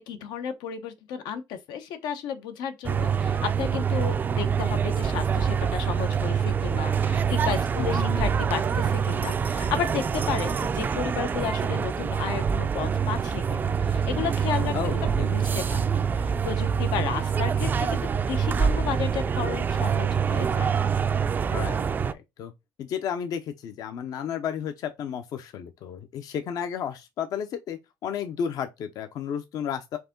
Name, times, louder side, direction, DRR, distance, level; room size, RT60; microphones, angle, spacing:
voice 1, 0.0-15.8 16.1-20.7, left 8 dB, 90° left, 0.9 m, -33 dB
sound 1, 2.8-22.1, right 7 dB, 25° right, 0.3 m, -25 dB
voice 2, 7.8-8.3 14.7-15.4 21.5-22.5 22.8-30.0, left 8 dB, 60° left, 0.6 m, -33 dB
Thunder, 8.6-12.0, right 8 dB, 60° right, 0.7 m, -42 dB
4.7 x 2.8 x 3.7 m
cardioid pair, 150°, 7 cm